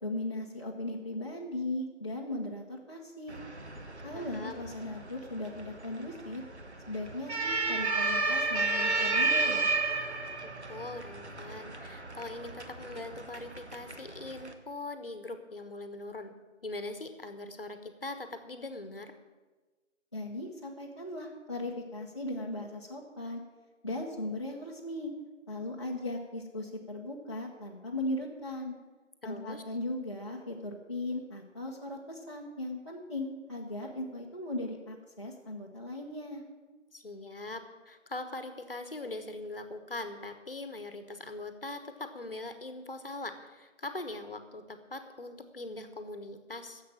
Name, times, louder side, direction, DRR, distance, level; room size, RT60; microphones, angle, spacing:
voice 1, 0.0-3.4 4.0-6.4 6.9-9.7 20.1-23.4 23.8-25.1 25.5-28.7 29.2-36.4, left 1 dB, 25° left, -4 dB, 0.8 m, -38 dB
sound 1, 3.3-14.5, right 3 dB, 60° right, 1.4 m, -33 dB
voice 2, 4.1-4.7 10.7-16.3 16.6-19.1 29.2-29.6 36.9-46.8, left 2 dB, 45° left, 9 dB, 1.2 m, -41 dB
11.5 x 7.4 x 8.7 m, 1.3 s
figure-of-eight pair, 165°, 38 cm